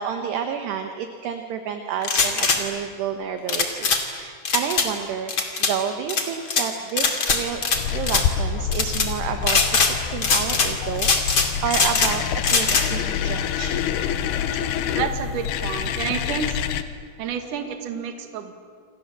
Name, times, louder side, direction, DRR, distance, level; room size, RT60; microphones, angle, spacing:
voice 1, 0.0-5.3 5.6-7.6 7.9-13.8, right 7 dB, 70° right, 6 dB, 2.9 m, -30 dB
sound 1, 2.0-2.6 3.5-4.0 4.4-4.9 5.3-5.7 6.1-6.7 7.0-7.8 8.0-8.3 8.7-9.1 9.4-9.9 10.2-10.7 11.0-12.1 12.4-12.9, left 4 dB, 35° left, 2.2 m, -21 dB
sound 2, 7.7-16.8, left 9 dB, 70° left, 2.6 m, -27 dB
voice 2, 14.9-16.6 17.2-18.5, right 7 dB, 50° right, 6 dB, 2.9 m, -30 dB
28.5 x 26.5 x 7.5 m, 2.1 s
omnidirectional pair, 5.7 m